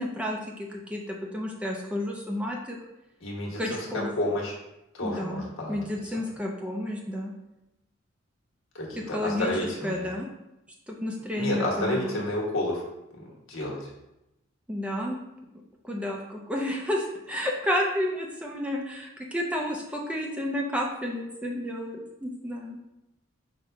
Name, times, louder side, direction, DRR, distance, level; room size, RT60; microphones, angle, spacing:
voice 1, 0.0-2.8 3.6-4.1 5.0-7.3 9.1-9.5 9.8-10.3 10.9-12.2 14.7-15.2 15.8-22.8, left 1 dB, 5° right, -1 dB, 0.4 m, -31 dB
voice 2, 3.2-4.6 4.9-5.8 8.7-10.1 11.3-12.8 13.1-13.9, left 1 dB, 80° left, -3 dB, 1.2 m, -30 dB
5.2 x 2.2 x 4.5 m, 0.90 s
head